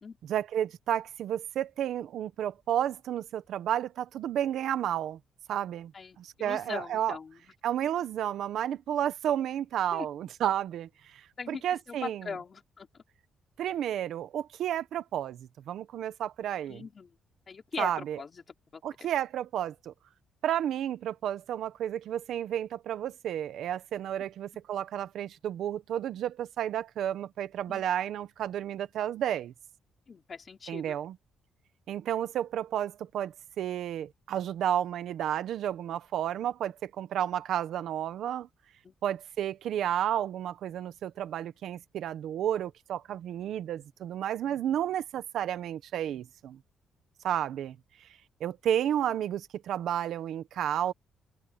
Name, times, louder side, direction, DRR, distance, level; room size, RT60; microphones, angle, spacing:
voice 1, 0.3-5.2 5.5-5.9 6.2-7.2 7.6-12.2 13.6-16.8 17.8-18.2 18.8-19.9 20.4-29.5 30.7-31.2 31.9-38.5 39.0-46.6 47.2-47.7 48.0-48.1 48.4-50.9, right 10 dB, 65° right, 1.0 m, -32 dB
voice 2, 5.9-7.5 9.9-10.1 11.4-13.0 16.7-17.2 17.5-18.4 18.7-18.8 27.7-27.8 30.1-31.0 38.8-38.9, left 5 dB, 30° left, 3.7 m, -41 dB
open air
cardioid pair, 155°, 0 cm